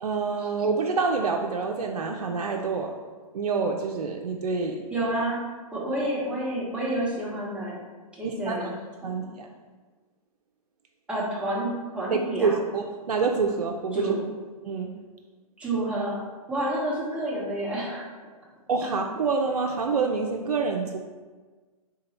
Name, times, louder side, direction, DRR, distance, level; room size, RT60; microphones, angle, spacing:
voice 1, 0.0-2.9 3.3-4.8 8.2-8.7 9.0-9.5 12.1-14.2 14.6-14.9 18.7-21.0, right 4 dB, 90° right, 2 dB, 0.4 m, -27 dB
voice 2, 4.9-5.4 5.7-7.8 8.2-8.8 11.1-12.5 13.9-14.2 15.6-16.2 16.5-18.2 18.8-18.9, right 1 dB, 5° right, -7 dB, 1.1 m, -29 dB
3.7 x 2.8 x 4.2 m, 1.4 s
hypercardioid pair, 130°, 19 cm